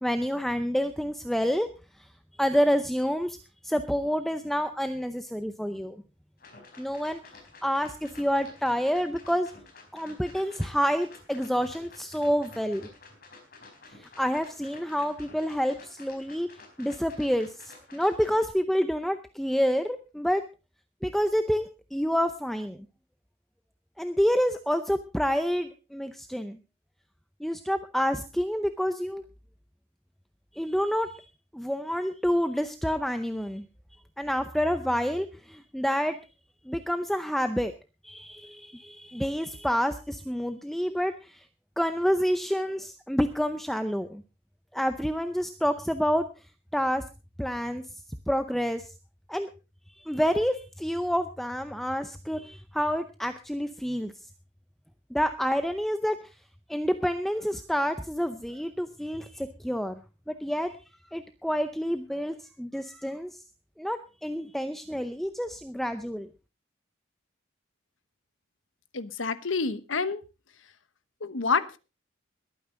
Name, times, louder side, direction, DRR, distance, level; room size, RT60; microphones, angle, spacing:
voice 1, 0.0-1.7 2.4-3.4 3.6-6.0 6.8-7.2 7.6-9.5 9.9-12.9 14.0-16.5 16.8-20.4 21.0-22.8 24.0-26.6 27.4-29.2 30.6-31.3 31.5-33.6 34.2-36.2 36.7-37.7 38.0-41.5 41.8-44.2 44.7-46.2 46.7-47.0 47.4-47.8 48.3-48.9 49.3-49.5 50.0-54.1 55.1-56.2 56.7-60.0 60.3-60.7 61.1-63.4 63.8-66.3, equal, ahead, 0.6 m, -28 dB
sound 1, 6.4-18.5, left 3 dB, 50° left, 4.4 m, -51 dB
voice 2, 68.9-70.2 71.2-71.8, left 4 dB, 75° left, 1.1 m, -28 dB
21.0 x 9.4 x 3.8 m
head